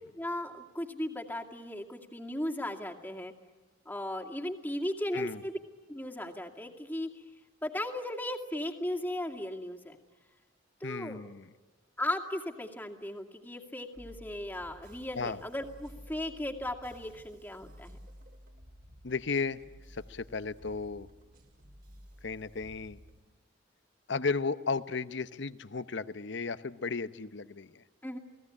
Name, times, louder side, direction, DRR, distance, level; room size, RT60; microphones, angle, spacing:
voice 1, 0.1-3.3 3.9-5.6 5.9-7.2 7.6-10.0 10.8-11.3 12.0-18.0 28.0-28.2, left 1 dB, 10° left, 2 dB, 2.3 m, -36 dB
voice 2, 10.8-11.5 15.2-15.4 19.0-19.6 19.9-21.1 22.2-23.0 24.1-27.8, left 4 dB, 65° left, 14 dB, 0.9 m, -34 dB
sound 1, 14.0-23.2, equal, 50° right, 4.3 m, -53 dB
29.5 x 19.0 x 9.9 m, 1.2 s
head